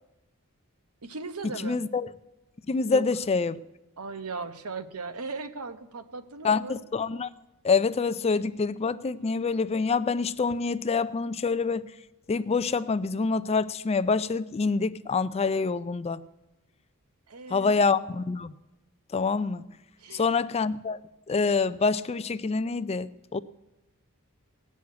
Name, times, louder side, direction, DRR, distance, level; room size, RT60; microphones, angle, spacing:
voice 1, 1.0-1.8 2.9-3.1 4.0-6.8 17.3-17.9 20.0-20.4, right 4 dB, 75° right, 1.0 m, -38 dB
voice 2, 1.6-2.1 2.7-3.6 6.4-7.3 7.6-11.8 12.3-16.2 17.5-18.5 19.1-19.6 20.1-21.0 21.3-23.4, left 4 dB, 30° left, 0.4 m, -26 dB
18.0 x 6.4 x 9.4 m
head